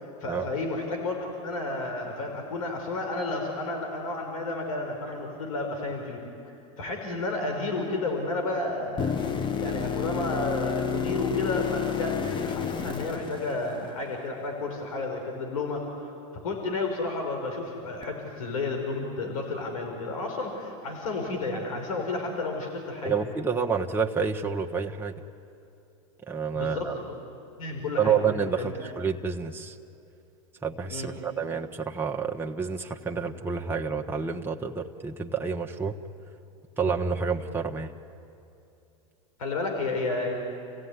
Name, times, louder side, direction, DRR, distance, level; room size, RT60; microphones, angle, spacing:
voice 1, 0.0-6.2 6.8-9.1 9.6-15.9 16.3-23.1 26.5-27.2 27.6-28.2 28.6-28.9 30.9-31.1 39.4-40.3, left 2 dB, 80° left, 3 dB, 4.5 m, -31 dB
sound 1, 9.0-14.0 18.0-18.1, left 7 dB, 25° left, 1.3 m, -30 dB
voice 2, 23.0-25.1 26.3-26.9 28.0-29.8 30.6-36.0 36.8-37.9, right 6 dB, 10° right, 2 dB, 1.2 m, -29 dB
29.0 x 16.5 x 9.7 m, 2.7 s
hypercardioid pair, 105°, 18 cm